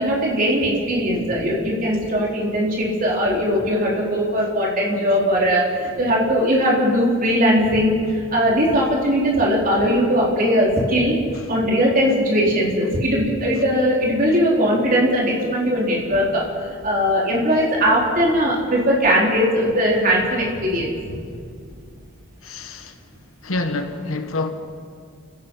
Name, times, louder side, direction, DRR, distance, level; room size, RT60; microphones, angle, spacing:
voice 1, 0.0-11.2 11.5-21.2, equal, 40° right, 4.2 m, -19 dB
voice 2, 22.4-23.0 23.4-24.5, left 2 dB, 80° left, 1.4 m, -27 dB
29.5 x 16.5 x 5.7 m
head